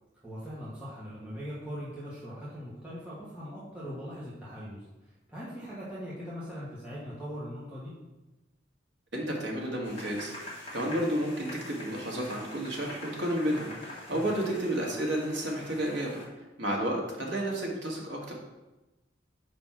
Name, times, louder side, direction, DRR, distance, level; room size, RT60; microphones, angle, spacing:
voice 1, 0.2-4.8 5.3-7.9 14.1-14.3, equal, 10° right, -10 dB, 1.4 m, -40 dB
voice 2, 9.1-10.3 10.7-16.2 16.6-18.3, right 1 dB, 80° right, -2 dB, 1.6 m, -31 dB
sound 1, 9.8-16.3, left 1 dB, 30° left, 2.0 m, -45 dB
5.3 x 4.3 x 5.8 m, 1.0 s
head